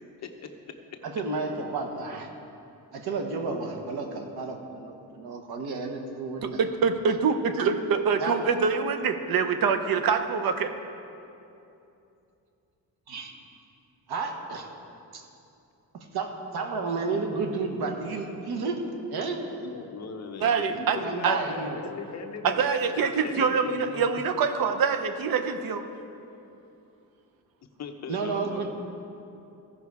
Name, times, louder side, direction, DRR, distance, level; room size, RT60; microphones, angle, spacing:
voice 1, 1.0-2.3 2.9-6.6 8.2-8.4 13.1-13.3 14.1-14.7 15.1-15.2 15.9-18.8 19.1-19.4 20.7-21.8 28.1-28.7, right 4 dB, 90° right, 3 dB, 1.3 m, -32 dB
voice 2, 6.4-10.7 20.4-21.4 22.4-25.8, right 5 dB, 70° right, 8 dB, 0.8 m, -25 dB
voice 3, 19.6-22.7 23.0-24.0 27.8-28.7, left 5 dB, 45° left, 5 dB, 0.8 m, -38 dB
15.5 x 5.9 x 4.8 m, 2.7 s
wide cardioid pair, 165°, 37 cm